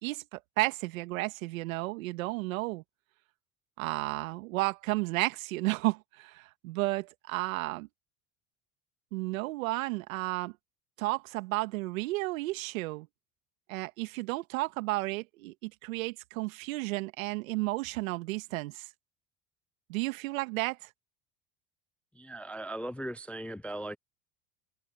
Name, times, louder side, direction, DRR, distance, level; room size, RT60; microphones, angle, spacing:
voice 1, 0.0-2.8 3.8-7.9 9.1-10.6 11.0-13.1 13.7-18.9 19.9-20.9, right 21 dB, 80° right, 1.8 m, -32 dB
voice 2, 22.2-24.0, right 1 dB, 5° left, 0.3 m, -38 dB
hypercardioid pair, 80°, 40 cm